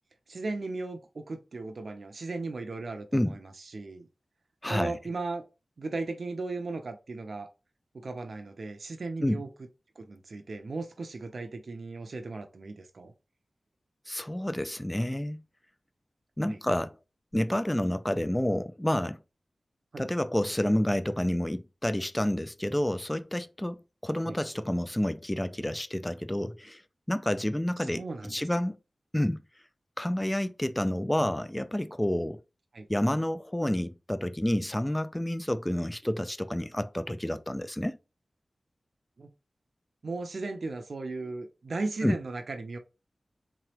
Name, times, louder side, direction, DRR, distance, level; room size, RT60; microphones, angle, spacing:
voice 1, 0.3-4.1 4.7-5.4 5.8-7.5 7.9-9.5 10.0-13.1 16.4-16.6 19.9-20.0 24.2-24.4 27.9-28.3 32.7-32.9 39.2-39.3 40.0-42.8, right 3 dB, 75° right, 0.5 m, -36 dB
voice 2, 4.6-4.9 9.2-9.4 14.1-15.4 16.4-17.0 17.3-19.2 20.0-26.8 27.1-28.8 29.1-29.4 30.0-32.4 32.9-38.0 42.0-42.2, left 1 dB, 15° left, 0.4 m, -29 dB
3.7 x 3.1 x 2.9 m
cardioid pair, 45°, 0 cm